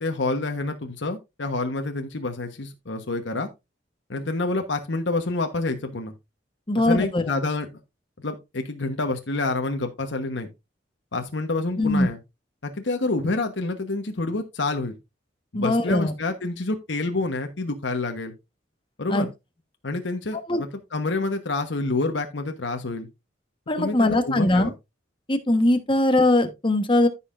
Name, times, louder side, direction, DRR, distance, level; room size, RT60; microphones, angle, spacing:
voice 1, 0.0-3.5 4.1-6.1 6.8-7.7 8.2-10.5 11.1-12.2 12.6-15.0 15.5-18.3 19.0-19.3 19.8-23.1 23.8-24.7, left 2 dB, 75° left, 1.1 m, -28 dB
voice 2, 6.7-7.2 11.8-12.1 15.5-16.1 19.1-19.3 20.5-20.6 23.7-24.7 25.3-27.1, left 1 dB, 25° left, 1.2 m, -21 dB
14.5 x 5.6 x 2.5 m
head